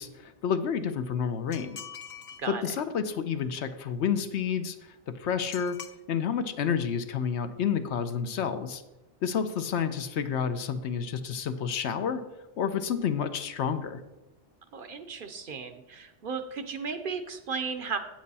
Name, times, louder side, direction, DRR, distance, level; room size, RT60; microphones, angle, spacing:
voice 1, 0.0-1.8 2.5-4.8 5.2-5.8 6.1-8.8 9.2-12.2 12.6-14.0, left 7 dB, 75° left, 9 dB, 1.0 m, -29 dB
sound 1, 1.5-2.5 5.5-6.0, left 7 dB, 50° left, 0.5 m, -43 dB
voice 2, 14.7-18.0, right 5 dB, 55° right, 8 dB, 0.8 m, -35 dB
8.5 x 7.7 x 4.1 m, 1.0 s
omnidirectional pair, 1.2 m